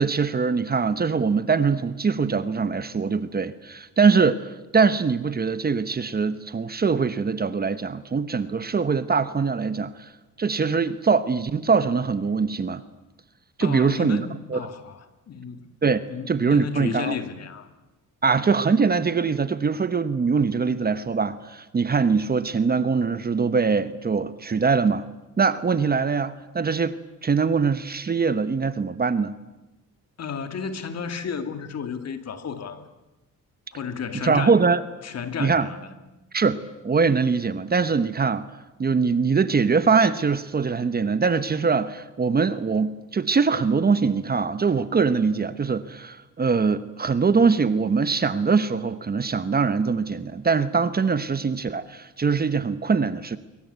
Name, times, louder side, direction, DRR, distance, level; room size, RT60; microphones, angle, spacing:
voice 1, 0.0-10.1 10.4-12.8 13.6-14.7 15.8-16.0 16.3-17.2 18.2-25.0 25.4-29.4 34.2-34.8 35.4-35.7 36.3-38.5 38.8-53.4, right 5 dB, 30° right, 13 dB, 1.1 m, -22 dB
voice 2, 13.6-15.7 16.1-17.7 30.2-32.8 33.7-34.6 35.0-35.9, left 6 dB, 50° left, 9 dB, 2.5 m, -33 dB
25.0 x 23.5 x 8.2 m, 1.1 s
cardioid pair, 125°, 32 cm